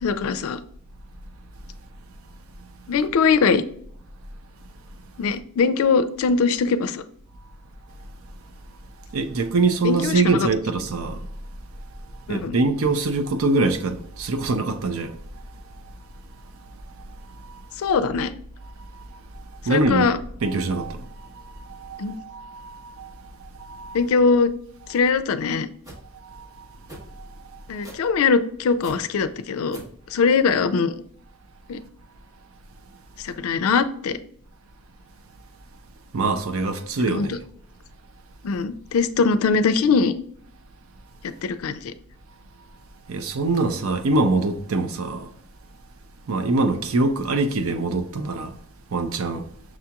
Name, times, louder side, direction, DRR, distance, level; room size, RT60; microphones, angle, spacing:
voice 1, 0.0-0.6 2.9-3.6 5.2-7.0 9.8-10.5 12.3-12.6 17.8-18.3 19.7-20.2 22.0-22.2 23.9-24.5 24.9-25.7 27.7-29.8 30.1-31.0 31.7-31.8 33.2-34.2 37.1-37.4 38.4-40.1 41.2-41.9, left 5 dB, 90° left, 0.4 m, -21 dB
voice 2, 9.1-11.3 12.3-15.2 17.3-17.6 18.8-19.1 19.6-20.1 20.4-24.0 26.1-26.7 27.1-27.6 36.1-37.4 43.1-45.3 46.3-48.6 48.9-49.5, right 3 dB, 80° right, 0.5 m, -24 dB
sound 1, 25.8-26.0 26.9-27.1 27.8-28.1 28.8-29.0 29.7-30.0, right 1 dB, 15° right, 1.2 m, -40 dB
6.0 x 2.9 x 2.3 m
head